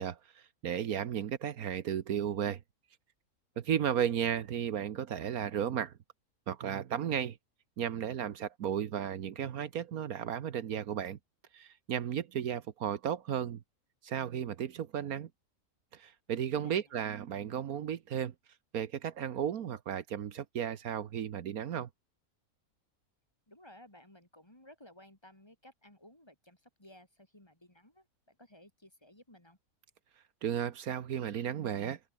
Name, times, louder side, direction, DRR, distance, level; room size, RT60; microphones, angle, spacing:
voice 1, 0.0-2.6 3.6-5.9 6.5-7.4 7.8-11.2 11.5-13.6 14.0-15.3 15.9-18.3 18.7-21.9 30.4-32.0, right 9 dB, 75° right, 1.4 m, -34 dB
voice 2, 3.8-4.2 16.5-16.8 23.5-29.6, left 1 dB, 15° left, 3.1 m, -57 dB
omnidirectional pair, 1.6 m